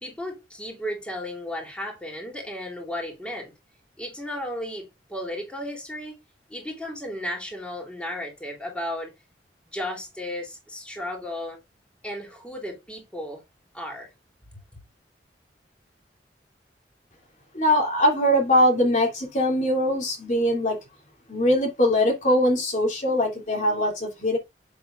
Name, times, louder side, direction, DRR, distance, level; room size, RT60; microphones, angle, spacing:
voice 1, 0.0-3.5 4.0-6.2 6.5-9.1 9.7-11.6 12.0-13.4 13.7-14.1, left 1 dB, 5° left, 3.4 m, -34 dB
voice 2, 17.5-20.8 21.3-24.4, left 1 dB, 45° left, 2.9 m, -22 dB
8.5 x 7.6 x 2.6 m
head